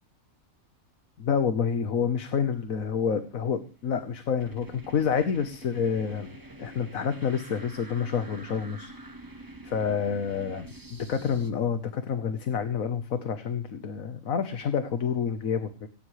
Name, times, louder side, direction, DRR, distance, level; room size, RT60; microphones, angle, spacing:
voice 1, 1.2-6.3 6.6-8.9 9.6-15.9, left 7 dB, 80° left, 9 dB, 1.6 m, -28 dB
sound 1, 3.4-11.5, right 1 dB, 15° right, 1.5 m, -46 dB
18.0 x 17.5 x 3.3 m, 0.33 s
omnidirectional pair, 1.4 m